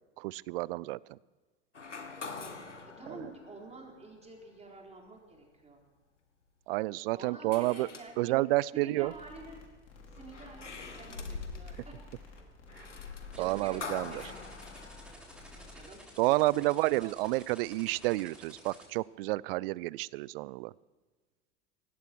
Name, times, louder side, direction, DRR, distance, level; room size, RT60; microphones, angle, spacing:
voice 1, 0.2-1.2 3.1-3.2 6.7-7.9 8.2-9.1 12.8-12.9 13.4-14.1 16.2-20.7, right 20 dB, 55° right, 24 dB, 0.4 m, -30 dB
sound 1, 1.7-4.3 4.9-5.0 7.5-8.6 10.0-15.7, left 4 dB, 90° left, 1.5 m, -45 dB
voice 2, 2.8-5.8 7.1-8.3 8.7-9.6 10.1-12.1 13.3-14.3 15.1-16.0 16.3-17.3, right 2 dB, 20° right, 0 dB, 4.3 m, -49 dB
sound 2, 9.1-15.8, left 3 dB, 45° left, 4.7 m, -53 dB
sound 3, 13.3-18.8, equal, ahead, 6.8 m, -53 dB
18.5 x 15.5 x 4.6 m, 1.3 s
figure-of-eight pair, 75°, 35 cm